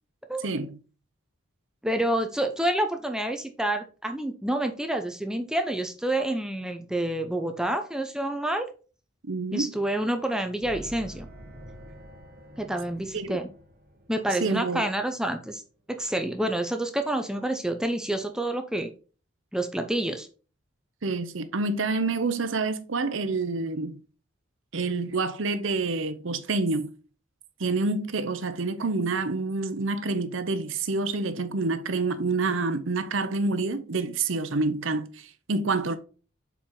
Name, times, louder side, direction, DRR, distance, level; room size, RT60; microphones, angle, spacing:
voice 1, 0.4-0.8 9.3-9.7 13.1-13.4 14.4-14.8 21.0-24.0 24.7-26.9 27.6-36.0, right 3 dB, 70° right, 0.8 m, -27 dB
voice 2, 1.8-8.7 9.5-11.3 12.6-13.5 14.1-15.6 15.9-18.9 19.5-20.3, right 1 dB, 5° right, 0.6 m, -28 dB
sound 1, 10.6-15.3, equal, 50° right, 1.4 m, -47 dB
7.1 x 4.5 x 3.8 m
head